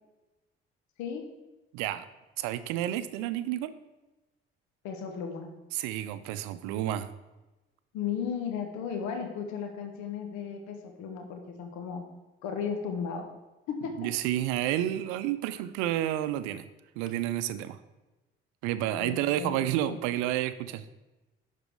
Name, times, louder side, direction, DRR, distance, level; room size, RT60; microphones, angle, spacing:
voice 1, 1.7-2.1 2.4-3.7 5.7-7.1 14.0-16.6 17.0-17.8 18.6-20.9, right 13 dB, 80° right, 13 dB, 0.6 m, -30 dB
voice 2, 4.8-5.5 7.9-12.0 12.4-13.3 13.7-14.1 19.0-19.6 19.9-20.0, left 7 dB, 75° left, 5 dB, 1.4 m, -35 dB
11.5 x 4.2 x 4.8 m, 1.1 s
hypercardioid pair, 50°, 29 cm